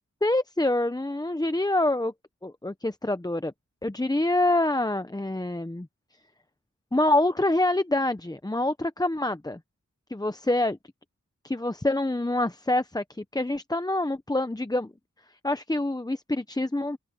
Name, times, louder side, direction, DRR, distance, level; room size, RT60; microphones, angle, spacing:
voice 1, 0.2-2.1 2.4-3.5 3.8-5.9 6.9-9.6 10.1-10.8 11.4-14.9 15.4-17.0, left 1 dB, 10° left, 0.8 m, -26 dB
open air
wide cardioid pair, 55°, 32 cm